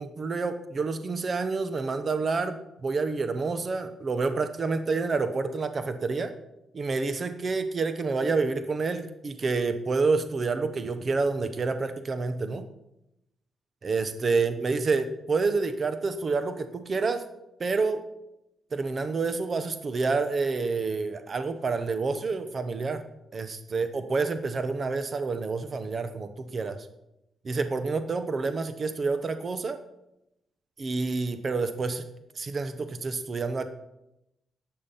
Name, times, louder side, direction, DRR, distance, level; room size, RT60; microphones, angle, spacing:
voice 1, 0.0-6.3 6.7-12.6 13.8-17.2 17.6-18.1 18.7-23.0 23.3-26.8 27.4-29.8 30.8-32.0 32.4-33.6, right 4 dB, 35° right, 9 dB, 0.9 m, -28 dB
12.0 x 8.8 x 5.7 m, 0.87 s
cardioid pair, 135°, 0 cm